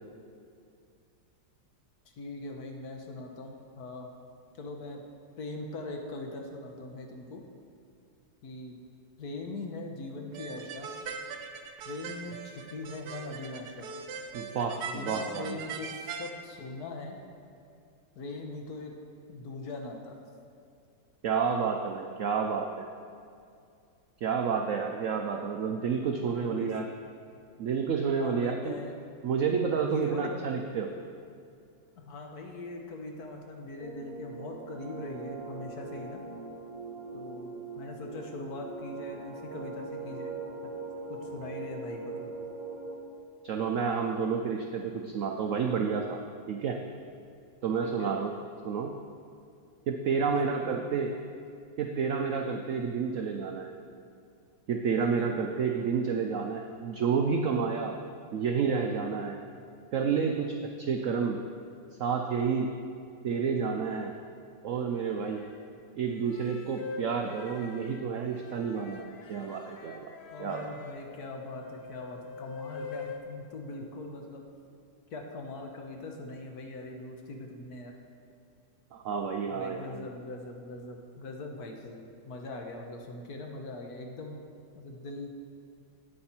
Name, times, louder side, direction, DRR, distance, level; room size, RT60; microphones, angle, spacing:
voice 1, 2.2-4.1 4.6-5.0 5.4-7.4 8.4-8.8 9.2-10.9 11.8-13.9 14.8-17.2 18.1-18.9 19.3-20.2 26.1-26.7 28.2-28.9 29.8-30.3 32.0-36.2 37.1-40.3 41.1-42.3 47.8-48.1 50.2-50.7 55.0-55.3 70.3-74.4 75.1-77.9 79.5-84.4 84.7-85.3, left 2 dB, 60° left, 2 dB, 1.4 m, -41 dB
sound 1, 10.3-16.3, right 5 dB, 70° right, 1.1 m, -41 dB
voice 2, 14.3-15.6 21.2-22.7 24.2-26.9 27.6-28.8 29.2-30.9 43.4-46.2 46.5-46.8 47.6-48.4 48.6-48.9 49.9-51.1 51.8-53.7 54.7-57.9 58.3-59.4 59.9-61.4 62.0-62.7 63.2-64.1 64.6-65.4 65.9-70.1 70.4-70.7 78.9-80.0, right 6 dB, 85° right, 3 dB, 0.6 m, -30 dB
sound 2, 33.8-43.0, right 3 dB, 50° right, 2.1 m, -41 dB
sound 3, 65.0-65.6 66.2-73.2, left 5 dB, 75° left, 0.5 m, -44 dB
9.7 x 8.5 x 4.3 m, 2.4 s
omnidirectional pair, 2.0 m